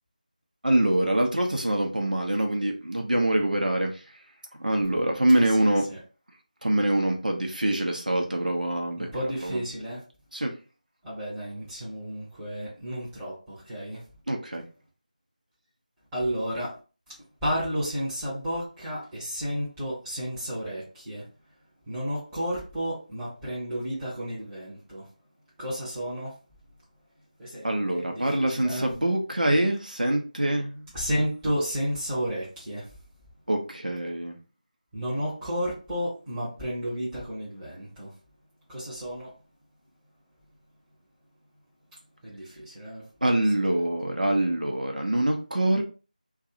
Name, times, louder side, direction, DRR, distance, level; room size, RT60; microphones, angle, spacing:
voice 1, 0.6-4.0 4.6-5.8 6.6-9.1 9.4-9.6 10.3-10.5 14.3-14.6 27.6-30.9 33.5-34.3 43.2-45.8, right 1 dB, 75° right, 0.7 m, -25 dB
voice 2, 5.3-6.0 9.0-10.0 11.0-14.0 16.1-16.8 17.1-17.2 17.4-21.3 21.9-25.1 25.6-26.4 27.4-28.9 30.9-33.0 34.9-38.1 38.7-39.4 42.2-43.1 43.7-43.8 44.2-44.5, equal, 5° right, 0.7 m, -32 dB
2.6 x 2.3 x 2.8 m
figure-of-eight pair, 165°, 4 cm